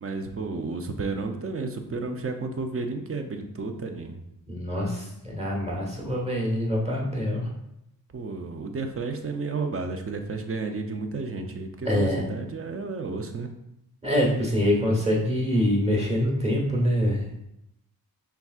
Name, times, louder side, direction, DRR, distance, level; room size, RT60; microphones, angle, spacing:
voice 1, 0.0-4.2 8.1-13.5, right 3 dB, 35° right, 5 dB, 0.5 m, -32 dB
voice 2, 4.5-7.5 11.8-12.2 14.0-17.3, equal, 15° right, -2 dB, 1.1 m, -25 dB
5.8 x 3.5 x 2.4 m, 0.82 s
wide cardioid pair, 130°, 39 cm